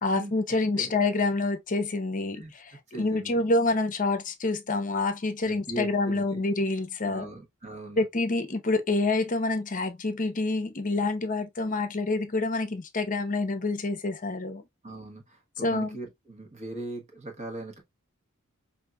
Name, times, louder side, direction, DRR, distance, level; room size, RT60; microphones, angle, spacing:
voice 1, 0.0-2.4 3.0-7.3 8.0-14.6 15.6-16.0, left 2 dB, 40° left, 0.8 m, -27 dB
voice 2, 2.9-3.4 5.4-6.4 7.0-8.1 14.8-17.8, right 2 dB, 35° right, 1.2 m, -39 dB
5.2 x 2.7 x 2.2 m
head